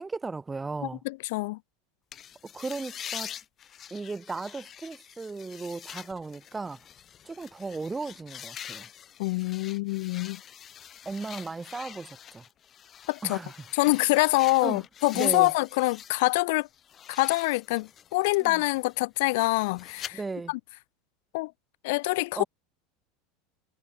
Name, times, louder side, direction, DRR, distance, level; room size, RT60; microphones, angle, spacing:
voice 1, 0.0-1.0 2.5-3.3 3.9-6.8 7.2-8.9 11.0-12.4 13.2-13.5 14.6-14.8 15.1-15.5 18.4-18.6 20.1-20.5 22.4-22.5, right 3 dB, 15° right, 6.1 m, -36 dB
voice 2, 1.0-1.6 9.2-10.4 13.1-13.4 13.7-16.7 17.1-20.2 20.5-20.6 21.3-21.5 21.8-22.4, left 23 dB, 75° left, 3.9 m, -25 dB
sound 1, 2.1-16.3 16.7-20.1, left 9 dB, 35° left, 5.2 m, -45 dB
supercardioid pair, 120°, 0 cm